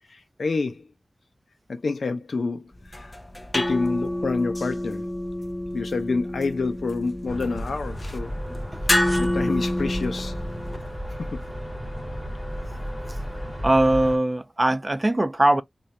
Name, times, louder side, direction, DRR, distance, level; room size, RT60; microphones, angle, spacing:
voice 1, 0.1-0.8 1.7-3.2 3.5-5.1 5.7-8.4 8.9-10.4 11.2-11.4, left 3 dB, 80° left, 0.7 m, -28 dB
sound 1, 2.7-10.8, left 1 dB, 20° left, 0.8 m, -28 dB
sound 2, 7.3-14.2, equal, 5° left, 2.1 m, -33 dB
sound 3, 8.2-13.8, right 1 dB, 40° right, 0.8 m, -43 dB
voice 2, 13.6-15.6, right 1 dB, 25° right, 0.4 m, -20 dB
3.2 x 2.7 x 3.0 m
wide cardioid pair, 85°, 0 cm